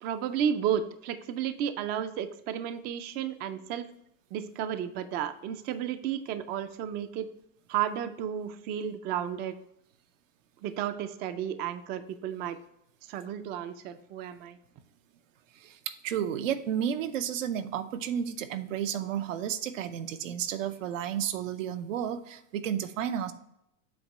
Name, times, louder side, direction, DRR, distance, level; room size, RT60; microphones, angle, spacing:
voice 1, 0.0-3.9 4.3-7.3 7.7-9.6 10.6-12.6 13.0-14.6, right 9 dB, 25° right, 11 dB, 0.3 m, -32 dB
voice 2, 15.5-23.3, right 9 dB, 85° right, 9 dB, 0.7 m, -32 dB
7.8 x 2.9 x 5.3 m, 0.79 s
supercardioid pair, 125°, 38 cm